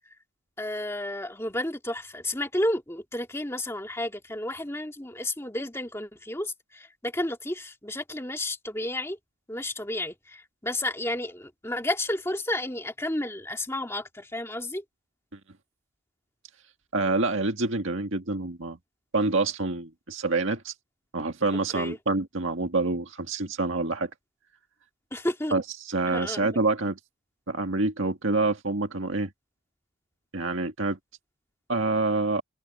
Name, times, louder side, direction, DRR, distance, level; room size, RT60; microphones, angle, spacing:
voice 1, 0.6-9.2 9.5-14.8 21.7-22.0 25.1-25.5 26.1-26.4, left 1 dB, 10° left, 2.3 m, -31 dB
voice 2, 16.9-18.8 19.1-20.7 21.1-24.1 25.5-27.0 27.5-29.3 30.3-31.0 31.7-32.4, right 3 dB, 65° right, 1.8 m, -27 dB
head